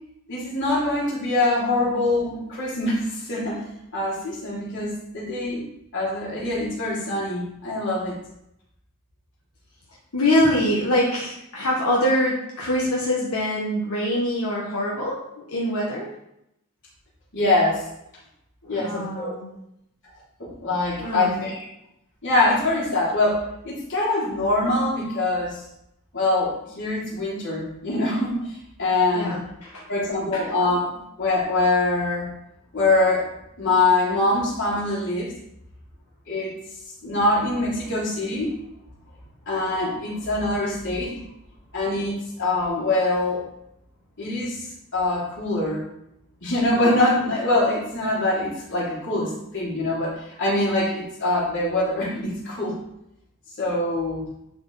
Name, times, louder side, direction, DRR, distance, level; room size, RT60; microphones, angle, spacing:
voice 1, 0.3-3.6 3.9-5.6 5.9-8.2 17.3-17.8 18.7-19.3 20.4-21.6 22.2-25.6 26.1-28.4 28.8-29.4 29.9-30.9 31.2-32.3 32.7-33.2 33.6-35.3 36.3-36.5 37.0-38.5 39.5-41.2 41.7-43.4 44.2-44.6 44.9-45.8 46.4-50.1 50.4-52.7 53.6-54.2, left 2 dB, 60° left, -6 dB, 3.4 m, -23 dB
voice 2, 10.1-16.1 18.6-19.5 21.0-21.4 29.1-29.9 30.3-30.6, left 1 dB, 90° left, -4 dB, 1.7 m, -24 dB
10.5 x 5.1 x 4.1 m, 0.80 s
head